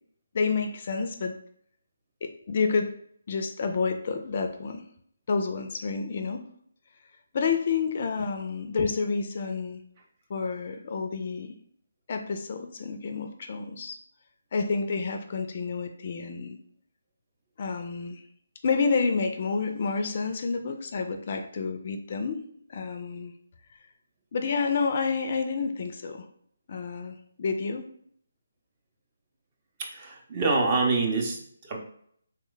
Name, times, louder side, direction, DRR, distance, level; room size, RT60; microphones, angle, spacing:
voice 1, 0.3-1.4 2.2-2.9 3.3-4.8 5.3-6.5 7.3-9.8 10.3-11.5 12.1-14.0 14.5-16.6 17.6-18.2 18.6-22.4 22.7-23.3 24.3-26.2 26.7-27.9, left 5 dB, 45° left, 6 dB, 0.3 m, -29 dB
voice 2, 29.8-31.8, right 3 dB, 30° right, 1 dB, 0.6 m, -26 dB
3.2 x 2.1 x 3.8 m, 0.65 s
hypercardioid pair, 160°, 0 cm